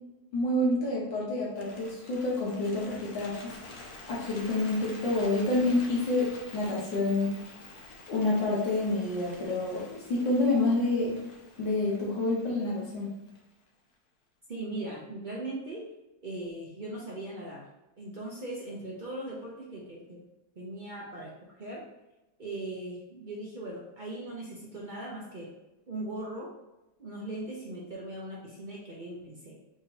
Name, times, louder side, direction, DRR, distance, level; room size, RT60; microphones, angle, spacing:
voice 1, 0.3-3.5 4.1-7.4 8.1-11.2 11.6-13.1, left 2 dB, 85° left, -5 dB, 2.1 m, -28 dB
Bird, 1.5-13.7, left 2 dB, 65° left, 1.2 m, -48 dB
voice 2, 14.5-15.8 16.2-17.6 18.0-20.2 20.6-21.3 21.6-21.8 22.4-25.5 25.9-26.5 27.0-29.6, right 2 dB, 55° right, -5 dB, 0.5 m, -39 dB
4.9 x 3.6 x 2.8 m, 0.96 s
omnidirectional pair, 2.0 m